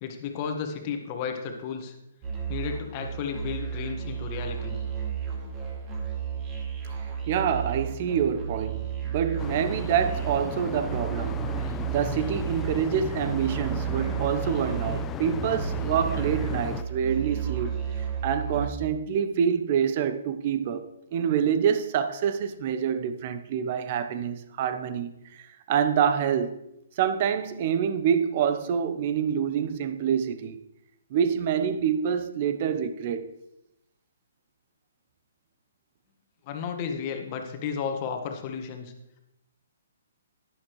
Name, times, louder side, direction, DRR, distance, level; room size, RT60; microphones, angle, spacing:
voice 1, 0.0-1.9 2.5-4.8 36.4-38.9, left 6 dB, 35° left, 1.5 m, -33 dB
Musical instrument, 2.2-18.7, right 8 dB, 25° right, 2.3 m, -33 dB
voice 2, 7.3-11.5 11.9-26.6 27.0-30.6 31.1-33.3, right 8 dB, 40° right, 0.8 m, -27 dB
sound 1, 9.4-16.8, left 9 dB, 20° left, 0.3 m, -36 dB
11.0 x 11.0 x 3.1 m
figure-of-eight pair, 130°, 0 cm